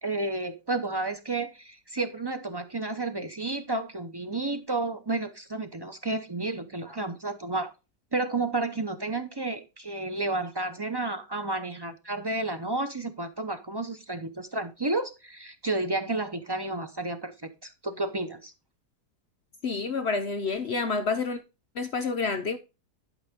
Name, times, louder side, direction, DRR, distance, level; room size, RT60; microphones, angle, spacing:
voice 1, 0.0-7.7 8.1-18.5, right 2 dB, 40° right, 0.3 m, -31 dB
voice 2, 19.6-21.4 21.7-22.6, left 4 dB, 55° left, 0.7 m, -28 dB
11.5 x 5.5 x 3.5 m
omnidirectional pair, 1.7 m